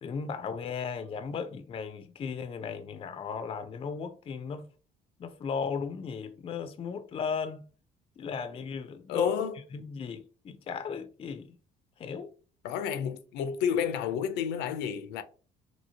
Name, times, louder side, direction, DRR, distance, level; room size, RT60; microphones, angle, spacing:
voice 1, 0.0-4.7 5.2-7.6 8.2-9.4 9.7-11.6 12.0-12.3, left 5 dB, 35° left, 0.4 m, -36 dB
voice 2, 9.1-9.6 12.6-15.2, left 8 dB, 90° left, 0.5 m, -30 dB
2.8 x 2.7 x 2.7 m
cardioid pair, 110°, 17 cm